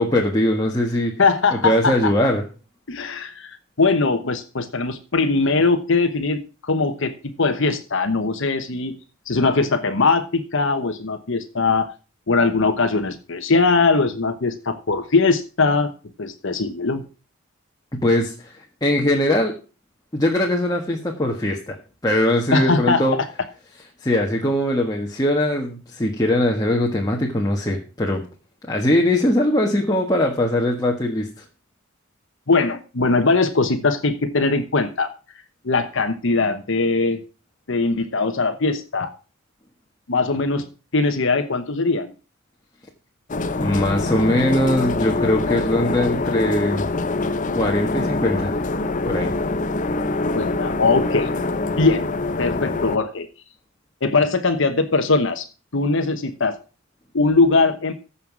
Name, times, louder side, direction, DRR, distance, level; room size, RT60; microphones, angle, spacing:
voice 1, 0.0-1.1 1.5-2.4 18.0-19.5 20.1-21.8 22.0-23.2 24.0-28.2 28.7-31.4 43.6-46.9 47.5-48.5 49.0-49.3, left 1 dB, 20° left, 0 dB, 1.5 m, -21 dB
voice 2, 1.2-2.1 2.9-7.1 7.4-8.9 9.3-11.9 12.3-15.9 16.2-17.0 22.5-23.2 32.5-35.1 35.6-37.2 37.7-39.1 40.1-42.1 50.3-51.3 51.8-52.0 52.4-53.3 54.0-55.4 55.7-56.6 57.1-57.9, left 3 dB, 65° left, 7 dB, 1.1 m, -20 dB
sound 1, 43.3-53.0, left 3 dB, 40° left, 0.7 m, -24 dB
14.5 x 5.7 x 6.1 m, 0.34 s
head